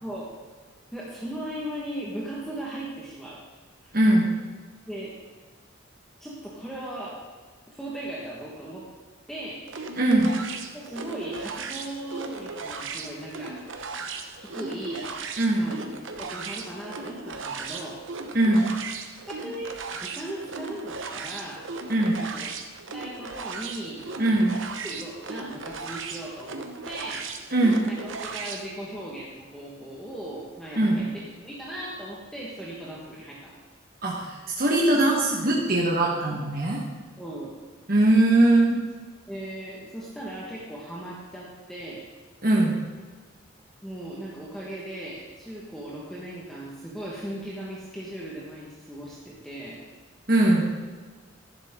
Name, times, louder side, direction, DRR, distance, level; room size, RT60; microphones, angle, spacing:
voice 1, 0.9-3.4 3.8-3.9 4.9-5.2 6.2-7.2 7.7-8.9 9.3-9.7 10.2-10.4 10.7-13.6 14.3-15.2 15.6-15.8 16.1-18.0 19.3-21.7 22.0-22.5 22.9-24.0 24.8-27.3 27.8-31.1 31.4-33.5 37.2-37.5 39.3-42.1 43.8-49.8, right 1 dB, ahead, -6 dB, 1.3 m, -38 dB
voice 2, 3.9-4.3 10.0-10.3 15.4-15.6 18.3-18.7 21.9-22.2 24.2-24.6 27.5-27.8 30.8-31.0 34.0-36.8 37.9-38.8 42.4-42.7 50.3-50.7, right 1 dB, 45° right, -3 dB, 1.3 m, -21 dB
sound 1, 9.7-28.7, right 4 dB, 65° right, 0.9 m, -37 dB
11.5 x 10.5 x 3.6 m, 1.4 s
head